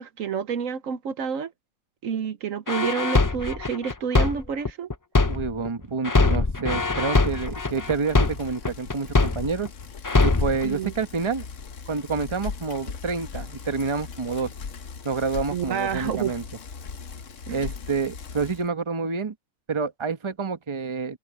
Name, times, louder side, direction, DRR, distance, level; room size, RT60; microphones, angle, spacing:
voice 1, 0.0-1.5 2.0-4.9 10.6-10.9 15.5-16.4 17.5-17.7, right 7 dB, 70° right, 1.3 m, -29 dB
sound 1, 2.7-5.7 6.0-9.7 10.0-10.6, left 3 dB, 30° left, 0.3 m, -22 dB
voice 2, 5.3-9.7 10.2-11.4 11.9-14.5 15.0-16.4 17.5-19.3 19.7-21.2, right 4 dB, 25° right, 1.0 m, -28 dB
Bicycle, 7.0-18.7, left 5 dB, 60° left, 1.4 m, -39 dB
open air
omnidirectional pair, 1.5 m